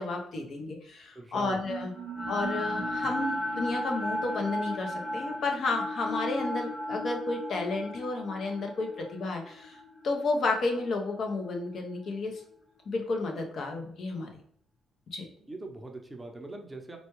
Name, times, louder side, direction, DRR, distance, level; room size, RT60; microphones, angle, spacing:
voice 1, 0.0-1.9 2.3-9.8 10.0-12.4 12.9-14.3 15.1-15.3, left 3 dB, 60° left, 3 dB, 0.8 m, -32 dB
voice 2, 1.1-1.6 15.5-17.0, right 2 dB, 15° right, 3 dB, 0.6 m, -41 dB
sound 1, 1.6-11.8, equal, 10° left, 1.1 m, -35 dB
4.1 x 2.3 x 3.0 m, 0.63 s
cardioid pair, 90°, 0 cm